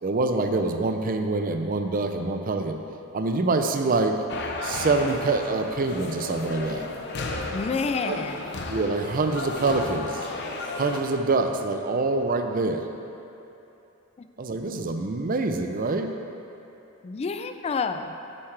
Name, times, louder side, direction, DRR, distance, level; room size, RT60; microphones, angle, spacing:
voice 1, 0.0-2.8 3.1-4.2 4.6-6.9 8.1-8.2 8.7-10.3 10.8-12.9 14.4-16.1, right 3 dB, 45° right, 6 dB, 0.5 m, -25 dB
sound 1, 4.3-11.0, left 3 dB, 60° left, 0.7 m, -34 dB
voice 2, 7.5-8.5 14.2-14.3 17.0-18.1, left 4 dB, 30° left, 8 dB, 0.3 m, -29 dB
9.0 x 7.3 x 3.3 m, 2.9 s
head